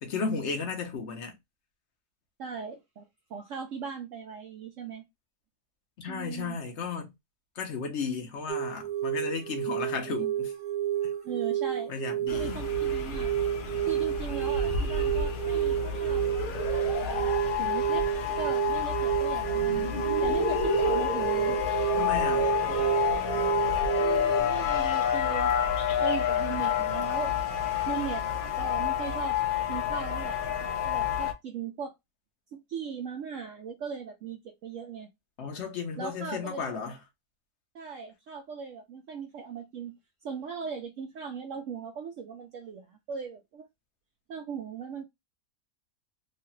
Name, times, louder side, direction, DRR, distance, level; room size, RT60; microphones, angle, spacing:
voice 1, 0.0-1.4 6.0-7.1 7.6-10.5 11.9-12.6 22.0-22.5 35.4-37.0, left 5 dB, 55° left, 1.0 m, -34 dB
voice 2, 2.4-3.0 3.3-5.0 6.1-6.6 11.2-11.9 12.3-13.4 13.8-17.3 17.6-18.1 18.4-19.9 20.2-21.6 22.4-23.0 24.0-25.5 26.0-27.4 27.9-29.4 29.7-30.4 30.8-31.9 32.5-35.1 36.0-36.7 37.7-40.0 40.2-43.7 44.3-45.0, right 6 dB, 65° right, 0.8 m, -39 dB
sound 1, 8.5-24.4, right 11 dB, 85° right, 1.2 m, -30 dB
sound 2, 12.3-31.3, left 8 dB, 75° left, 0.4 m, -29 dB
3.2 x 2.3 x 2.8 m
omnidirectional pair, 1.6 m